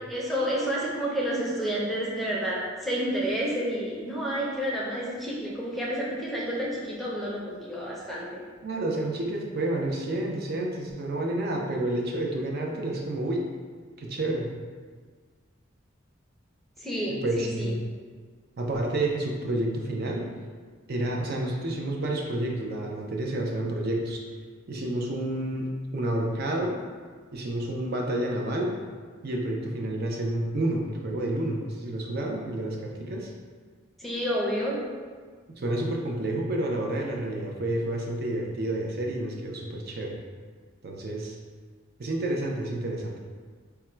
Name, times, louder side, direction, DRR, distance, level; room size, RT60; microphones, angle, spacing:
voice 1, 0.1-8.4 16.8-17.7 34.0-34.8, equal, ahead, -5 dB, 0.6 m, -30 dB
voice 2, 8.6-13.4 14.0-14.5 17.1-17.8 18.6-20.3 20.9-24.2 24.7-26.8 27.3-28.7 29.2-33.3 35.6-40.2 40.8-41.4 42.0-43.2, right 1 dB, 50° right, 0 dB, 0.5 m, -29 dB
3.5 x 2.2 x 4.3 m, 1.6 s
head